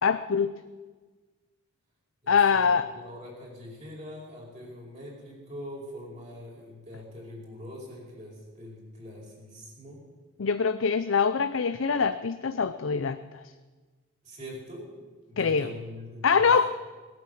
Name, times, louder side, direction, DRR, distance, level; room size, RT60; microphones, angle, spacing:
voice 1, 0.0-0.6 2.3-2.9 10.4-13.2 15.4-15.7 16.2-16.7, left 5 dB, 70° left, 11 dB, 0.6 m, -24 dB
voice 2, 2.2-10.0 14.2-16.6, left 1 dB, 35° right, -4 dB, 5.0 m, -43 dB
19.5 x 9.3 x 7.8 m, 1.3 s
head